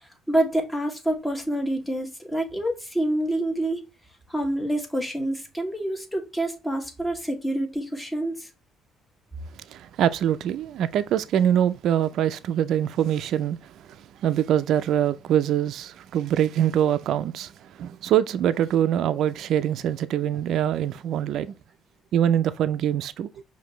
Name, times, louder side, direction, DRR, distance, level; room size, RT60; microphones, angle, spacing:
voice 1, 0.3-3.8 4.3-8.5, right 1 dB, 10° left, 1.3 m, -27 dB
voice 2, 9.7-17.5 17.8-21.5 22.1-23.3, right 10 dB, 70° right, 0.3 m, -24 dB
5.0 x 2.6 x 3.0 m
cardioid pair, 80°, 0 cm